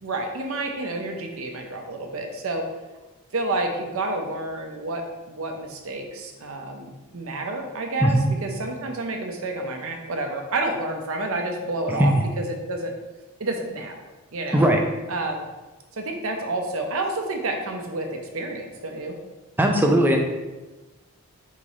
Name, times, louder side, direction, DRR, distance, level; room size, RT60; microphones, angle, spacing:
voice 1, 0.0-2.6 3.3-8.1 8.4-12.9 13.4-14.0 14.3-14.7 15.1-15.4 15.9-19.2, right 2 dB, 70° right, 3 dB, 0.6 m, -29 dB
voice 2, 14.5-14.8 19.6-20.2, right 1 dB, 10° right, 2 dB, 0.4 m, -18 dB
3.7 x 3.1 x 4.1 m, 1.2 s
head